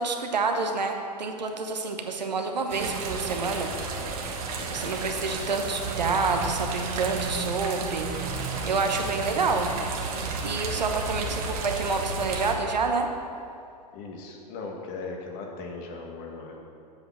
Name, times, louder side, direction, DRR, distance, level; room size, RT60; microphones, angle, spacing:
voice 1, 0.0-3.7 4.7-9.7 10.4-13.1, right 4 dB, 85° right, 4 dB, 1.0 m, -28 dB
sound 1, 2.7-12.5, right 4 dB, 60° right, 1.3 m, -32 dB
voice 2, 13.9-16.6, left 3 dB, 45° left, 1 dB, 1.5 m, -38 dB
7.8 x 6.0 x 6.1 m, 2.5 s
hypercardioid pair, 105°, 21 cm